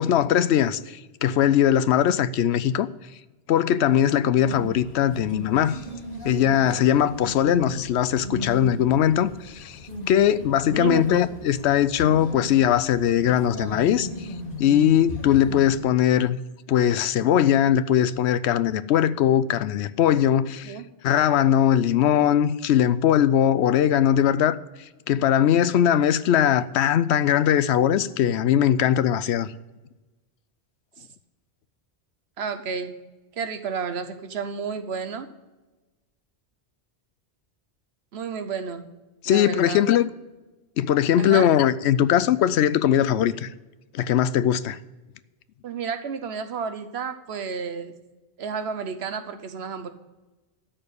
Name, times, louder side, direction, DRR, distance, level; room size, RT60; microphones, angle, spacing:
voice 1, 0.0-2.9 3.5-5.8 6.2-9.8 10.1-14.3 14.6-16.4 16.7-20.8 21.0-24.6 25.1-29.5 39.2-40.1 40.8-43.5 43.9-44.8, left 10 dB, 90° left, 0.8 m, -20 dB
sound 1, 4.4-15.8, equal, 55° left, 2.5 m, -36 dB
voice 2, 32.4-32.9 33.4-35.3 38.1-38.9 39.3-39.8 41.2-41.5 45.6-47.9 48.4-49.9, right 6 dB, 75° right, 1.1 m, -31 dB
13.0 x 4.5 x 8.4 m
omnidirectional pair, 1.1 m